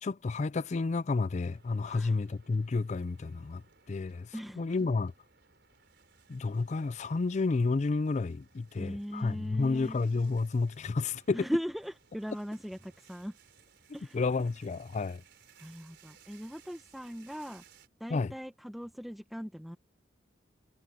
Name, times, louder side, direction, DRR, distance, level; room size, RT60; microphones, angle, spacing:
voice 1, 0.0-3.6 3.9-5.1 6.3-11.5 14.1-15.2 18.1-18.3, left 3 dB, 40° left, 0.4 m, -31 dB
sound 1, 1.5-17.9, right 6 dB, 65° right, 5.4 m, -62 dB
voice 2, 1.8-2.2 4.3-4.7 8.7-10.0 11.3-13.4 13.9-14.2 15.6-17.6 18.0-19.8, equal, ahead, 0.8 m, -39 dB
head